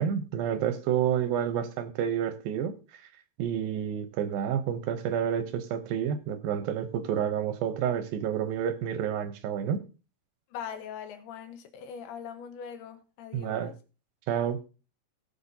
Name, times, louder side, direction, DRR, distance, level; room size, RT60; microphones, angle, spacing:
voice 1, 0.0-2.7 3.4-9.8 13.3-13.7 14.3-14.6, right 9 dB, 75° right, 2.5 m, -29 dB
voice 2, 10.5-13.7, left 8 dB, 85° left, 3.1 m, -41 dB
18.5 x 6.9 x 2.7 m
omnidirectional pair, 4.5 m